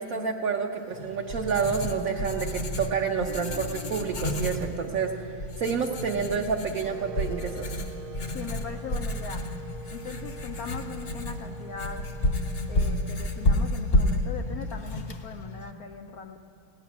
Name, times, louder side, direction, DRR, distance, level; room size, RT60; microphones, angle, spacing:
voice 1, 0.0-7.8, right 6 dB, 65° right, 1 dB, 0.8 m, -29 dB
Writing, 0.9-15.7, left 1 dB, 50° left, 0.7 m, -31 dB
sound 1, 6.8-14.8, right 6 dB, 85° right, 1.5 m, -46 dB
voice 2, 8.3-9.5 9.9-12.1 12.7-16.4, left 6 dB, 85° left, 5 dB, 0.8 m, -40 dB
17.5 x 10.5 x 6.0 m, 2.8 s
omnidirectional pair, 2.2 m